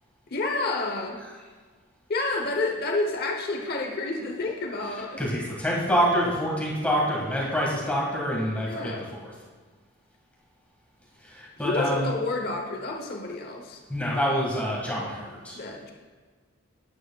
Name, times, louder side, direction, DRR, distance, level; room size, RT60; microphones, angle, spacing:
voice 1, 0.3-1.2 2.1-5.2 8.6-9.1 11.6-13.8 15.5-15.9, left 2 dB, 50° left, 1 dB, 0.9 m, -29 dB
voice 2, 5.2-9.3 11.2-12.1 13.9-15.6, equal, 5° left, -4 dB, 1.8 m, -26 dB
12.5 x 9.6 x 2.3 m, 1.5 s
head